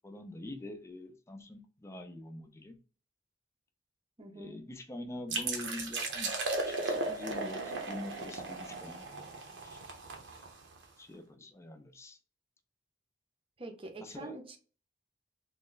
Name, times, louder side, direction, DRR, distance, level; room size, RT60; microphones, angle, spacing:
voice 1, 0.0-2.8 4.3-6.3 6.7-9.1 9.6-9.8 11.0-12.2 14.0-14.4, left 1 dB, 15° left, 7 dB, 0.4 m, -45 dB
voice 2, 4.2-4.6 13.6-14.6, right 2 dB, 30° right, 4 dB, 0.6 m, -45 dB
sound 1, 5.3-10.8, right 3 dB, 70° right, 0.8 m, -36 dB
3.1 x 2.1 x 3.8 m, 0.39 s
head